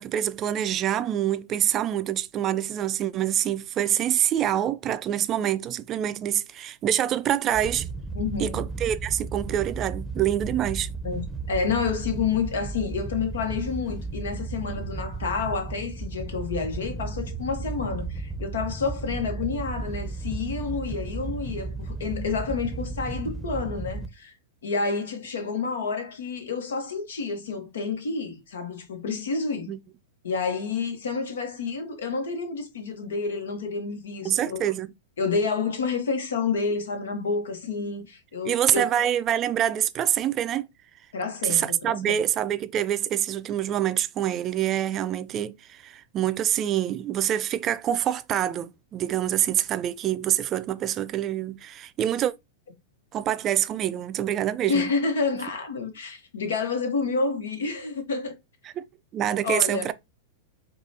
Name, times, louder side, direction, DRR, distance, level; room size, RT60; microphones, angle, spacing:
voice 1, 0.0-7.9 8.4-10.9 29.7-29.8 34.2-34.9 38.4-40.6 41.4-52.3 53.1-54.9 58.8-58.9 59.1-59.9, right 11 dB, 35° right, 0.3 m, -26 dB
Wind / Boat Water vehicle, 7.5-24.1, right 3 dB, 5° right, 0.7 m, -34 dB
voice 2, 8.1-8.7 11.0-24.3 24.6-29.7 30.2-34.6 35.2-38.8 41.1-41.9 54.7-58.3 59.4-59.9, left 4 dB, 80° left, 1.1 m, -29 dB
4.8 x 2.3 x 2.7 m
hypercardioid pair, 115°, 0 cm